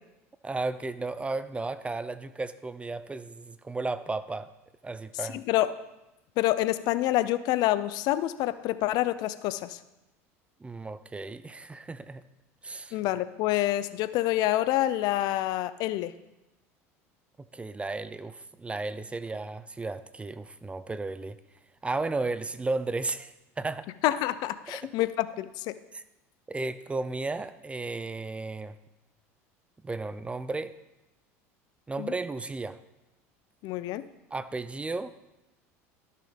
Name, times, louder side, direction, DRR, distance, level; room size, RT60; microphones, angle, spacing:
voice 1, 0.4-4.5 4.8-5.4 10.6-12.2 12.6-13.0 17.5-21.4 21.8-23.9 24.7-24.9 25.9-26.0 26.5-28.8 29.8-30.7 31.9-32.8 34.3-35.1, right 3 dB, 15° right, 14 dB, 0.5 m, -34 dB
voice 2, 5.3-5.7 6.4-9.8 12.9-16.1 24.0-25.7 32.0-32.1 33.6-34.0, left 15 dB, 60° left, 15 dB, 0.5 m, -27 dB
13.0 x 6.5 x 3.4 m, 0.96 s
hypercardioid pair, 85°, 8 cm